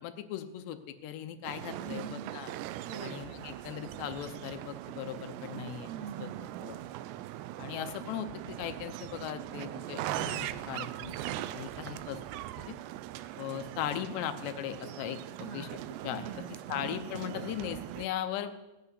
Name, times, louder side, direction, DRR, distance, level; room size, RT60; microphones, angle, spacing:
voice 1, 0.0-2.5 3.0-5.9 6.6-6.8 7.6-11.1 11.5-12.2 12.6-12.7 13.4-15.7 16.0-16.3 16.7-18.6, left 10 dB, 80° left, 9 dB, 3.1 m, -38 dB
sound 1, 1.4-18.1, right 14 dB, 85° right, 2.8 m, -40 dB
voice 2, 1.8-2.2 2.9-3.2 5.9-6.6 15.4-15.7 16.2-16.8, right 7 dB, 55° right, 1 dB, 2.2 m, -43 dB
17.0 x 8.2 x 9.8 m, 1.0 s
omnidirectional pair, 5.0 m